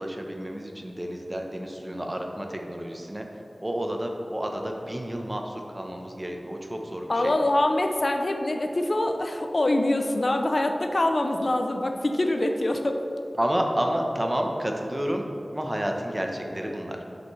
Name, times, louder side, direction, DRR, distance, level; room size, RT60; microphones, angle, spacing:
voice 1, 0.0-3.2 3.6-7.3 13.4-15.2 15.5-17.0, equal, 25° right, 2 dB, 0.8 m, -30 dB
voice 2, 7.1-13.0, left 1 dB, 55° left, 5 dB, 0.5 m, -24 dB
8.2 x 5.1 x 3.2 m, 2.9 s
wide cardioid pair, 40°, 0 cm